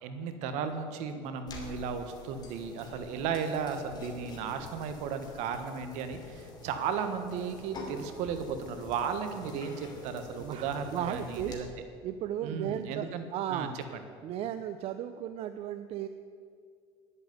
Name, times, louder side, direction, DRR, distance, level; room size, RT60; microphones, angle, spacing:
voice 1, 0.0-11.7 12.4-13.7, right 6 dB, 70° right, 8 dB, 1.4 m, -35 dB
sound 1, 1.5-11.5, left 2 dB, 35° left, 2.9 m, -47 dB
voice 2, 10.4-11.5 12.0-13.7 14.2-16.1, right 11 dB, 55° right, 10 dB, 0.6 m, -35 dB
10.0 x 8.2 x 9.5 m, 2.2 s
supercardioid pair, 105°, 12 cm